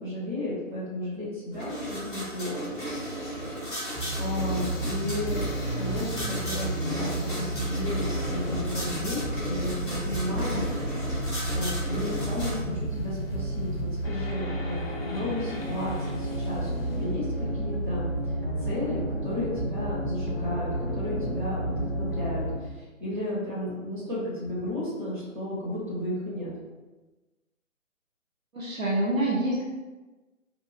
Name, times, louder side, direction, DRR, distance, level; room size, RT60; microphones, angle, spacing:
voice 1, 0.0-2.7 3.2-3.4 4.2-5.4 5.7-10.7 11.1-11.3 11.5-18.1 18.6-26.5, left 1 dB, 35° right, -7 dB, 1.4 m, -33 dB
slide printer, 1.5-12.6, equal, 5° left, 0.8 m, -35 dB
sound 1, 3.9-22.6, right 1 dB, 45° left, 0.5 m, -31 dB
voice 2, 28.5-29.7, right 1 dB, 75° right, -5 dB, 0.8 m, -27 dB
2.6 x 2.2 x 3.5 m, 1.2 s
figure-of-eight pair, 145°, 41 cm